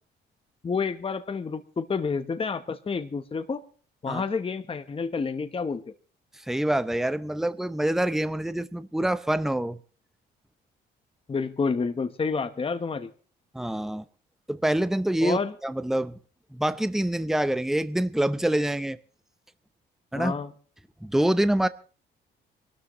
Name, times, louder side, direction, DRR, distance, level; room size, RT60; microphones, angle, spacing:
voice 1, 0.6-3.6 4.0-5.8 11.3-13.1 15.2-15.5 20.1-20.5, left 5 dB, 30° left, 1.0 m, -29 dB
voice 2, 6.5-9.8 13.5-14.0 14.5-16.2 16.5-19.0 20.1-20.3 21.0-21.7, right 1 dB, ahead, 0.7 m, -26 dB
24.5 x 13.0 x 3.0 m
cardioid pair, 90°, 20 cm